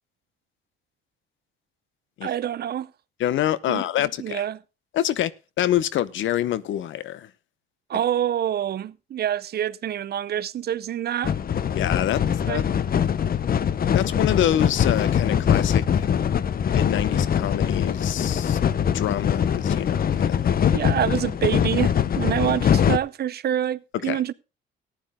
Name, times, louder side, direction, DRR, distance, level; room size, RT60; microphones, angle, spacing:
voice 1, 2.2-2.9 3.7-3.8 4.2-4.6 7.9-11.3 12.5-12.6 20.7-24.3, right 10 dB, 55° right, 0.6 m, -26 dB
voice 2, 3.2-4.4 4.9-5.3 5.6-7.3 11.7-12.2 12.5-12.6 13.9-16.1 16.7-18.6 18.9-20.6 24.0-24.2, left 12 dB, 75° left, 0.8 m, -26 dB
sound 1, 11.2-23.0, left 8 dB, 50° left, 0.8 m, -22 dB
14.5 x 9.9 x 3.7 m
cardioid pair, 90°, 20 cm